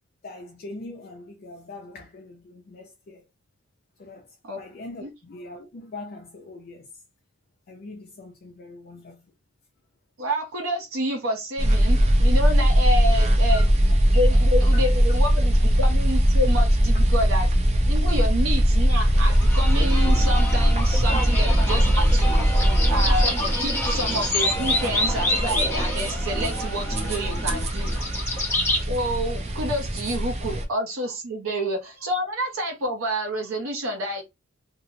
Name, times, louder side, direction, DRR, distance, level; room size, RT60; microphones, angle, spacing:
voice 1, 0.2-3.2 4.0-6.9 7.7-9.3 13.5-13.6 14.3-14.5 14.7-14.9 18.2-18.3 30.6-30.7 31.5-31.6, left 2 dB, 45° left, 0.4 m, -42 dB
voice 2, 10.2-13.7 14.1-17.5 17.9-27.9 28.9-34.2, equal, 80° right, 0.6 m, -29 dB
sound 1, 11.6-30.6, equal, 30° right, 0.4 m, -21 dB
sound 2, 19.1-28.8, left 1 dB, 10° left, 0.8 m, -27 dB
2.7 x 2.0 x 2.6 m
head